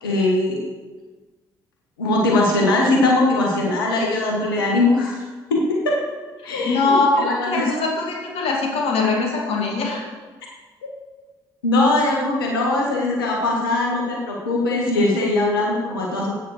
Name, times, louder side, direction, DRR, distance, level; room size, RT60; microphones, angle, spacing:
voice 1, 0.0-0.6 2.0-5.2 5.5-6.0 6.4-7.7 11.6-16.3, left 2 dB, 85° left, -1 dB, 1.5 m, -20 dB
voice 2, 6.6-10.1, left 3 dB, 60° left, 0 dB, 2.3 m, -22 dB
8.6 x 7.4 x 6.7 m, 1.3 s
hypercardioid pair, 45°, 12 cm